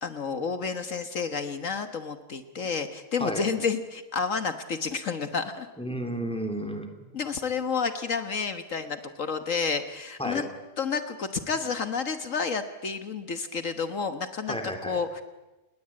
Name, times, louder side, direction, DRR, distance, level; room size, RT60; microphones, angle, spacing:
voice 1, 0.0-5.7 7.1-10.5 10.8-15.2, left 5 dB, 65° left, 9 dB, 1.7 m, -30 dB
voice 2, 5.8-6.9 10.2-10.4 14.5-15.0, equal, 5° left, 5 dB, 3.4 m, -32 dB
28.5 x 21.0 x 8.7 m, 1.1 s
omnidirectional pair, 1.4 m